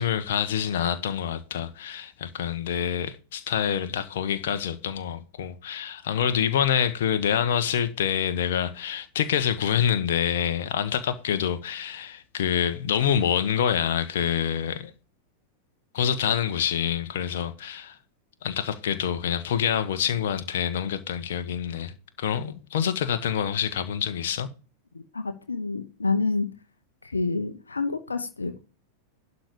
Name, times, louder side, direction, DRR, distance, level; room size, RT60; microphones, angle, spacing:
voice 1, 0.0-14.9 15.9-18.0 18.4-24.5, left 9 dB, 55° left, 1.2 m, -26 dB
voice 2, 24.9-26.5 27.0-28.6, left 3 dB, 75° left, 1.1 m, -28 dB
11.5 x 4.2 x 6.8 m
figure-of-eight pair, 90°, 0 cm